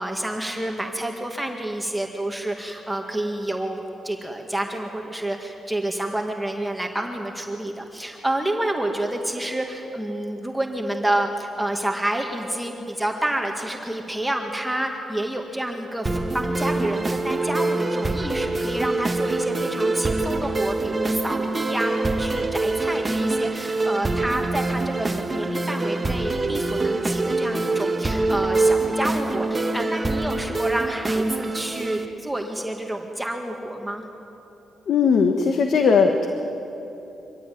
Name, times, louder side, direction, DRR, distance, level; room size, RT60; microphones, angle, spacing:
voice 1, 0.0-34.0, right 1 dB, 5° right, 2 dB, 1.8 m, -29 dB
sound 1, 16.1-32.1, right 2 dB, 20° right, 1.3 m, -25 dB
voice 2, 34.9-36.3, left 5 dB, 65° left, 5 dB, 1.4 m, -18 dB
24.5 x 15.5 x 9.3 m, 3.0 s
cardioid pair, 110°, 0 cm